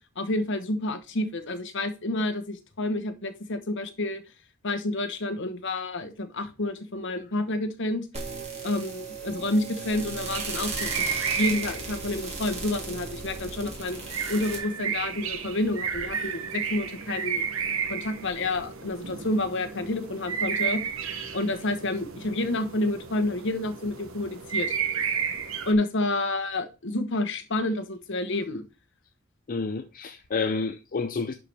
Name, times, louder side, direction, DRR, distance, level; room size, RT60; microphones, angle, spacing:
voice 1, 0.2-4.2 4.6-8.1 8.6-10.9 11.3-14.0 14.3-17.5 17.9-20.8 21.3-24.7 25.6-28.6, left 2 dB, 60° left, 1.1 m, -29 dB
sound 1, 8.1-14.6, right 4 dB, 30° right, 2.5 m, -36 dB
sound 2, 10.3-25.7, right 6 dB, 80° right, 1.2 m, -33 dB
voice 2, 29.5-31.3, left 4 dB, 45° left, 0.5 m, -29 dB
11.0 x 4.6 x 3.4 m
head